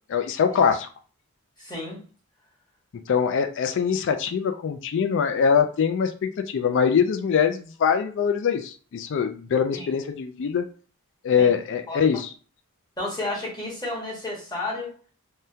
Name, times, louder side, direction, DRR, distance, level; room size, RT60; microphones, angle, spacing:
voice 1, 0.1-0.9 3.1-10.7 11.2-12.3, left 6 dB, 60° left, 8 dB, 0.3 m, -23 dB
voice 2, 1.6-2.0 9.7-9.9 11.4-11.5 11.9-12.0 13.0-14.9, left 2 dB, 20° left, -5 dB, 1.4 m, -31 dB
3.5 x 2.2 x 2.7 m, 0.40 s
head